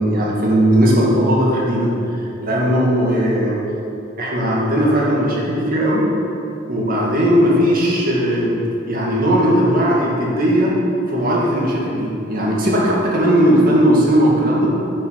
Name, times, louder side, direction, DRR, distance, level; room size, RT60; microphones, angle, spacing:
voice 1, 0.0-1.9 2.4-3.6 4.2-6.1 6.7-8.5 8.8-10.8 11.1-14.7, equal, 50° right, -4 dB, 2.1 m, -17 dB
10.0 x 6.0 x 5.8 m, 2.8 s
head